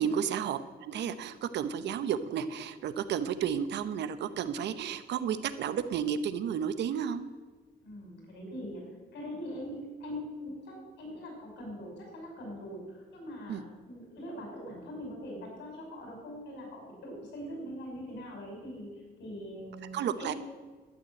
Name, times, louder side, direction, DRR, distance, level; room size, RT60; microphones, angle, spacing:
voice 1, 0.0-7.3 13.5-13.6 19.9-20.3, right 8 dB, 75° right, 12 dB, 0.9 m, -32 dB
voice 2, 7.8-8.8 9.1-20.3, equal, 90° left, 1 dB, 5.5 m, -42 dB
12.5 x 9.5 x 7.8 m, 1.3 s
cardioid pair, 175°, 18 cm